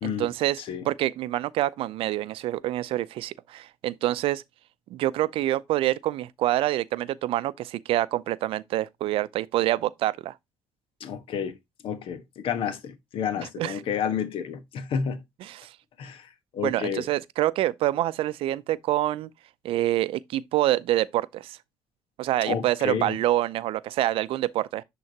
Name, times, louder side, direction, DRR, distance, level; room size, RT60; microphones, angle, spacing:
voice 1, 0.0-0.6 0.8-4.4 4.9-10.3 13.6-13.8 15.5-15.7 16.6-19.3 19.6-21.6 22.2-24.8, right 14 dB, 70° right, 0.5 m, -26 dB
voice 2, 11.0-11.6 11.8-15.2 16.0-17.1 22.4-23.2, left 7 dB, 65° left, 1.3 m, -30 dB
10.5 x 3.8 x 2.9 m
supercardioid pair, 65°, 10 cm